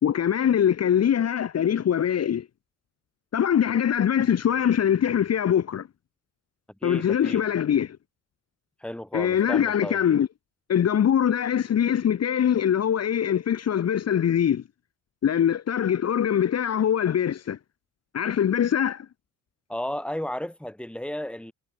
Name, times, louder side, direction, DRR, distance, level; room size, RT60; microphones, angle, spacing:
voice 1, 0.0-2.5 3.3-5.9 6.8-8.0 9.1-10.3 10.7-14.6 15.2-17.6 18.1-19.1, left 9 dB, 50° left, 1.7 m, -23 dB
voice 2, 6.8-7.4 8.8-10.0 19.7-21.5, left 1 dB, 5° left, 3.8 m, -33 dB
cardioid pair, 110°, 33 cm